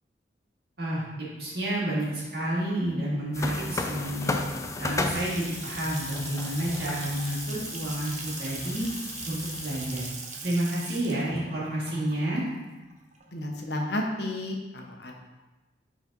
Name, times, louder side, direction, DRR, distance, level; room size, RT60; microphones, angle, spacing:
voice 1, 1.4-4.3 4.8-8.8 9.3-10.1 10.4-12.4, right 1 dB, 60° right, -6 dB, 2.0 m, -30 dB
sound 1, 3.3-10.1, left 3 dB, 15° left, 0.4 m, -35 dB
Water tap faucet / Sink (filling or washing) / Splash splatter, 4.9-13.5, right 4 dB, 40° right, 0.7 m, -41 dB
voice 2, 13.3-15.2, left 1 dB, 65° left, 1 dB, 0.9 m, -32 dB
5.0 x 4.0 x 5.3 m, 1.1 s
head